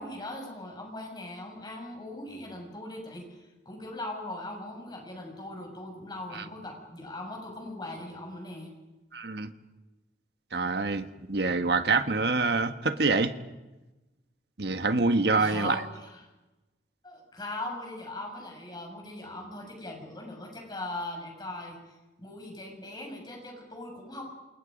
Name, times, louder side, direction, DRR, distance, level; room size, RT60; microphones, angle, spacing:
voice 1, 0.0-8.7 15.3-16.2 17.0-24.3, left 1 dB, 25° left, 6.8 m, -40 dB
voice 2, 9.1-9.5 10.5-13.3 14.6-15.8, right 3 dB, 65° right, 1.5 m, -26 dB
28.5 x 28.0 x 5.3 m
head